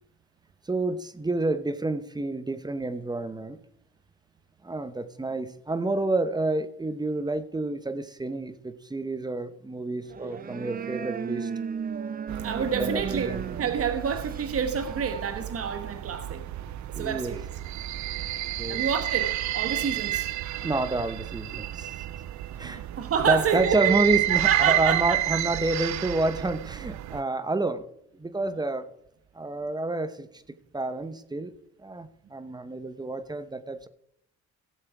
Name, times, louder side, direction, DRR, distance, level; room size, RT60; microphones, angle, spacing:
voice 1, 0.7-3.6 4.6-11.5 12.6-13.4 16.9-17.4 18.6-18.8 20.6-22.0 22.6-22.8 23.3-27.8 28.2-28.9 29.3-30.3 30.7-31.5 31.8-33.9, right 2 dB, 15° right, 12 dB, 1.1 m, -29 dB
sound 1, 10.0-15.3, right 6 dB, 30° right, 0.5 m, -35 dB
sound 2, 12.3-27.2, right 14 dB, 70° right, 0.6 m, -31 dB
voice 2, 12.4-13.3 13.6-16.4 16.9-17.4 18.7-20.3 22.6-23.9 24.3-25.4, right 7 dB, 50° right, 8 dB, 1.3 m, -28 dB
17.5 x 7.4 x 4.8 m, 0.75 s
cardioid pair, 90°, 30 cm